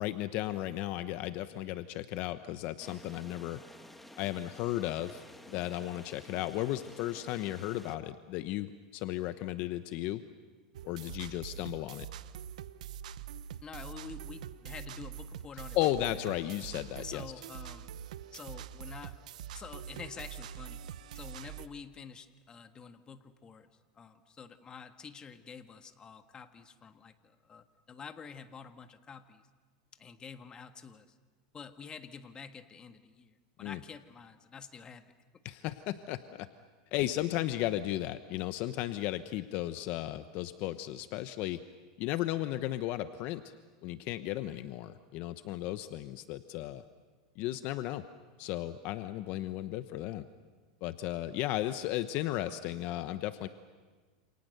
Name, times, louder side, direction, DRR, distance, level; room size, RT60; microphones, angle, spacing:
voice 1, 0.0-3.6 4.2-10.2 10.8-12.1 15.7-17.2 33.6-33.8 35.4-36.5 36.9-41.6 42.0-43.5 43.8-46.8 47.4-48.0 48.4-50.3 50.8-53.5, left 14 dB, 50° left, 11 dB, 1.0 m, -35 dB
sound 1, 2.8-8.0, left 1 dB, 5° left, 1.6 m, -52 dB
sound 2, 10.7-21.7, right 9 dB, 80° right, 0.9 m, -44 dB
voice 2, 13.6-15.8 16.0-16.2 17.0-17.9 18.3-19.2 19.5-20.8 21.1-23.7 23.9-29.4 30.0-31.1 31.5-35.1, left 6 dB, 20° left, 8 dB, 1.6 m, -48 dB
28.5 x 28.5 x 6.7 m, 1.4 s
supercardioid pair, 130°, 4 cm